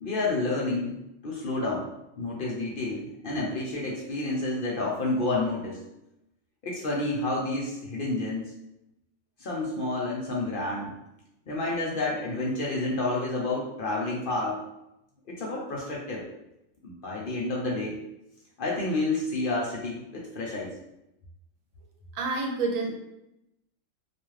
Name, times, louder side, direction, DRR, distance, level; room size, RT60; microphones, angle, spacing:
voice 1, 0.0-1.9 2.2-5.8 6.6-8.5 9.4-10.9 11.5-14.6 15.3-16.3 16.8-18.0 18.6-20.7, left 2 dB, 65° left, -4 dB, 0.5 m, -30 dB
voice 2, 22.1-22.9, right 3 dB, 85° right, 1 dB, 1.0 m, -28 dB
2.4 x 2.3 x 3.0 m, 0.88 s
omnidirectional pair, 1.3 m